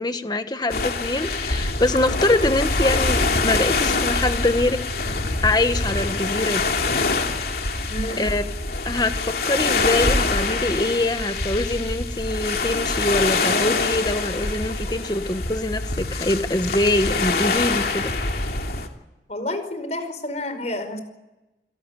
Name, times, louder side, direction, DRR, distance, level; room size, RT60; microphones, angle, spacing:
voice 1, 0.0-4.8 5.4-6.6 8.2-8.4 8.8-18.1, left 2 dB, 20° left, 9 dB, 1.3 m, -24 dB
sound 1, 0.7-18.9, left 3 dB, 55° left, 2.8 m, -24 dB
voice 2, 19.3-21.0, left 1 dB, 40° left, 9 dB, 5.1 m, -29 dB
29.5 x 17.5 x 10.0 m, 1.0 s
head